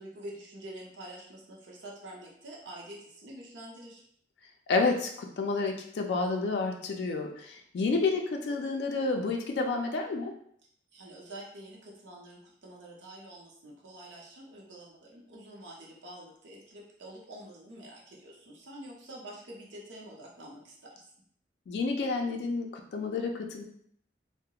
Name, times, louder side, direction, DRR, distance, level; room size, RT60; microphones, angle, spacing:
voice 1, 0.0-4.0 10.9-21.0, right 1 dB, 90° right, -3 dB, 0.7 m, -47 dB
voice 2, 4.7-10.3 21.7-23.6, left 3 dB, 70° left, 3 dB, 0.3 m, -30 dB
2.3 x 2.0 x 2.8 m, 0.66 s
head